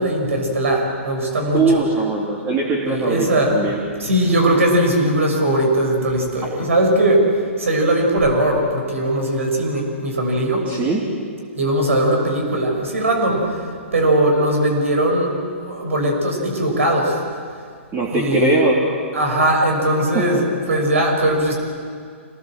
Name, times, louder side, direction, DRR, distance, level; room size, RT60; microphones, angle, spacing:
voice 1, 0.0-1.8 2.9-3.6 4.0-7.3 7.6-10.7 11.6-13.4 13.9-15.3 15.6-17.2 18.1-18.6 19.1-21.6, right 1 dB, 80° right, 2 dB, 6.5 m, -19 dB
voice 2, 1.5-3.8 10.7-11.1 17.9-18.8 20.1-20.3, right 3 dB, 25° right, -3 dB, 3.2 m, -20 dB
26.0 x 19.5 x 7.6 m, 2.1 s
hypercardioid pair, 130°, 7 cm